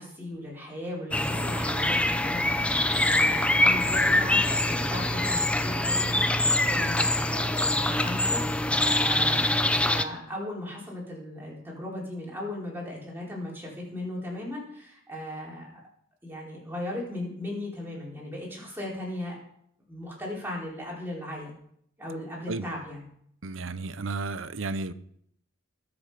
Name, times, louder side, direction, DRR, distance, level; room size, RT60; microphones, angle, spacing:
voice 1, 0.0-15.7 16.2-19.4 19.9-21.5 22.0-23.0, left 1 dB, 10° right, 4.5 m, -37 dB
sound 1, 1.1-10.0, left 1 dB, 5° left, 0.6 m, -24 dB
voice 2, 23.4-24.9, right 3 dB, 70° right, 0.7 m, -33 dB
20.5 x 7.1 x 5.1 m
head